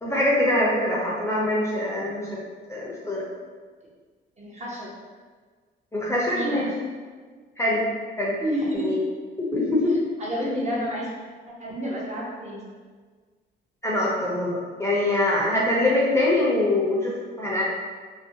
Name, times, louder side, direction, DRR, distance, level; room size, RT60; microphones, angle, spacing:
voice 1, 0.0-2.3 2.7-3.3 5.9-6.7 7.6-7.9 8.2-8.3 8.7-9.0 9.4-9.9 13.8-17.6, left 1 dB, 15° left, -5 dB, 0.5 m, -23 dB
voice 2, 4.4-4.9 6.2-6.7 8.4-9.1 10.2-11.1 11.5-12.6, equal, 35° right, -4 dB, 0.7 m, -30 dB
2.5 x 2.1 x 2.7 m, 1.5 s
cardioid pair, 90°, 20 cm